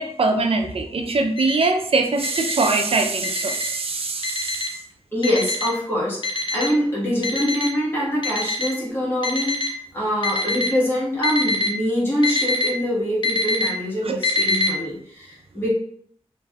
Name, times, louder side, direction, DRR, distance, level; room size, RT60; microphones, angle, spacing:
voice 1, 0.0-4.8 14.0-14.2, right 3 dB, 60° right, 5 dB, 0.4 m, -22 dB
Alarm, 1.4-1.7 2.2-2.7 3.2-3.7 4.2-4.7 5.2-5.7 6.2-6.7 7.2-7.7 8.2-8.7 9.2-9.7 10.2-10.7 11.2-11.7 12.2-12.7 13.2-13.7 14.2-14.7, left 2 dB, 45° left, 0.5 m, -24 dB
voice 2, 5.1-15.7, equal, 20° left, -7 dB, 1.4 m, -24 dB
3.2 x 2.5 x 2.3 m, 0.64 s
wide cardioid pair, 90°, 11 cm